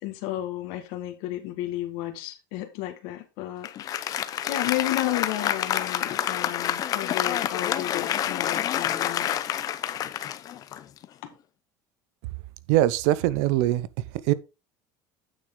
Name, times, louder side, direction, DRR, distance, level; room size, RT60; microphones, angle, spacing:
voice 1, 0.0-9.3 11.2-11.3, left 14 dB, 75° left, 1.8 m, -33 dB
Applause, 3.6-11.3, left 11 dB, 40° left, 0.7 m, -28 dB
voice 2, 12.7-13.9 14.3-14.4, right 14 dB, 80° right, 0.7 m, -22 dB
9.0 x 6.7 x 3.8 m
cardioid pair, 130°, 9 cm